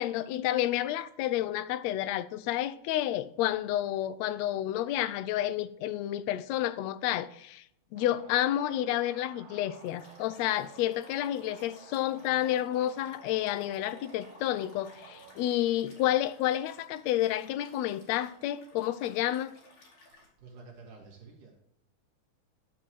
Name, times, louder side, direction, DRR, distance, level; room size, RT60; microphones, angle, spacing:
voice 1, 0.0-7.6 7.9-19.5, left 13 dB, 80° left, 1.6 m, -30 dB
sound 1, 8.0-15.5, right 6 dB, 60° right, 2.0 m, -52 dB
Liquid, 9.7-20.3, left 2 dB, 40° left, 3.3 m, -58 dB
voice 2, 20.1-21.5, right 4 dB, 85° right, 3.4 m, -51 dB
10.0 x 7.0 x 4.6 m
omnidirectional pair, 3.6 m